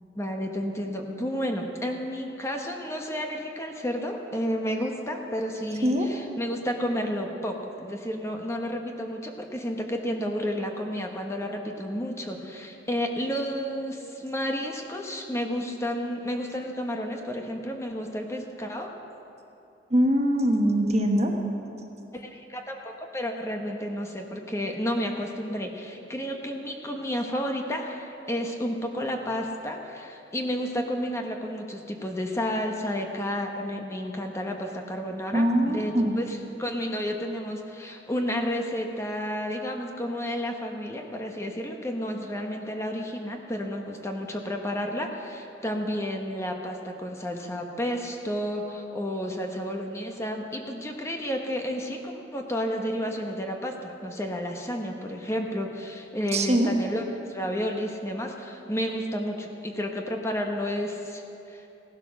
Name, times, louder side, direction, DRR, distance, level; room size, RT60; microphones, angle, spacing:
voice 1, 0.1-18.9 22.1-61.2 61.5-61.6, equal, 15° left, 2 dB, 1.0 m, -31 dB
voice 2, 19.9-21.3 35.3-36.2 56.3-56.7, equal, 35° right, 3 dB, 1.2 m, -22 dB
16.0 x 11.0 x 6.2 m, 2.8 s
head